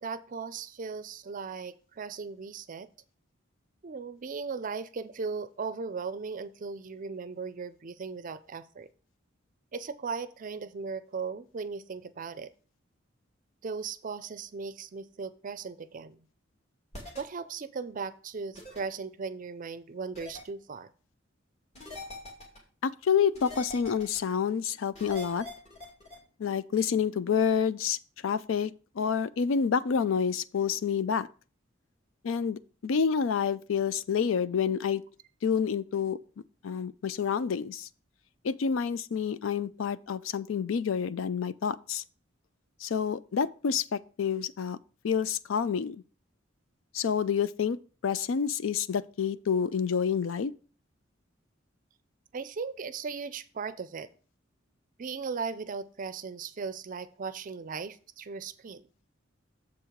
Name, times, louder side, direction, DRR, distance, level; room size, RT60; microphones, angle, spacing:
voice 1, 0.0-2.9 3.8-8.9 9.7-12.5 13.6-16.2 17.2-20.9 52.3-54.1 55.0-58.9, right 5 dB, 45° right, 0.4 m, -37 dB
sound 1, 16.9-17.2 18.6-18.8 20.2-20.4 21.8-22.6 23.4-24.2 25.0-26.2, left 2 dB, 35° left, 2.4 m, -43 dB
voice 2, 22.8-25.5 26.4-28.0 28.2-31.3 32.2-35.0 35.4-36.2 36.6-37.9 38.4-42.0 42.8-44.8 45.0-46.0 46.9-47.8 48.0-50.5, left 7 dB, 85° left, 0.4 m, -28 dB
7.2 x 4.6 x 5.0 m
head